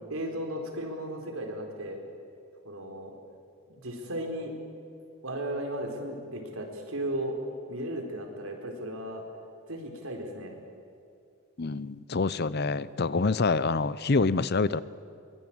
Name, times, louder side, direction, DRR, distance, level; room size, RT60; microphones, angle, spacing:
voice 1, 0.1-2.0 2.6-3.1 3.7-4.5 5.2-7.4 7.7-9.2 9.7-10.6 13.2-13.3, right 1 dB, 85° right, 3 dB, 4.6 m, -35 dB
voice 2, 11.6-14.8, left 3 dB, 50° left, 17 dB, 0.7 m, -26 dB
24.0 x 22.5 x 9.0 m, 2.5 s
head